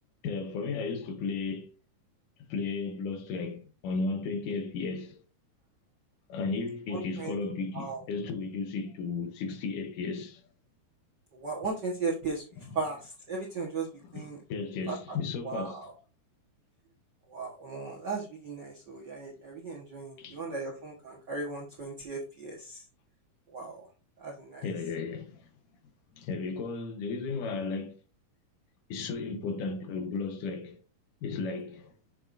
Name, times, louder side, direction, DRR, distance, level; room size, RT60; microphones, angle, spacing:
voice 1, 0.2-1.7 2.5-5.2 6.3-10.4 12.6-12.8 14.1-15.9 20.2-20.4 24.6-25.5 26.2-28.0 28.9-30.8 31.2-31.9, left 4 dB, 75° left, 2.5 m, -34 dB
voice 2, 6.9-7.3 7.7-8.0 11.3-12.5 12.7-13.9 14.1-14.4 14.9-15.2 15.4-15.9 17.3-22.8 23.5-23.9 24.2-24.7, right 4 dB, 55° right, 1.2 m, -36 dB
7.6 x 6.3 x 2.6 m
omnidirectional pair, 3.9 m